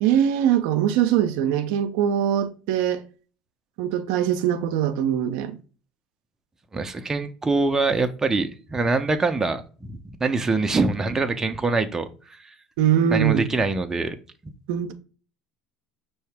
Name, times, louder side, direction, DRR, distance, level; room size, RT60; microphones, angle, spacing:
voice 1, 0.0-3.0 3.8-5.6 12.8-13.5 14.7-14.9, right 9 dB, 75° right, 0.5 m, -22 dB
voice 2, 6.7-12.5 13.1-14.2, right 3 dB, 20° right, 0.6 m, -24 dB
5.4 x 2.8 x 3.4 m
supercardioid pair, 95°, 3 cm